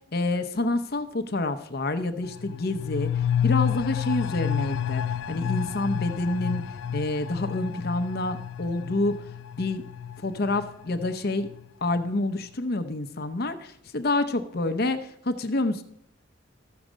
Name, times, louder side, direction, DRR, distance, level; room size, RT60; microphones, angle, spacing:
voice 1, 0.1-6.6 6.9-9.2 9.6-9.8 10.2-11.5 11.8-15.8, left 2 dB, 50° left, 8 dB, 0.7 m, -28 dB
sound 1, 2.2-11.6 12.0-12.1, left 9 dB, 75° left, 0.3 m, -30 dB
13.5 x 6.5 x 6.2 m, 0.73 s
head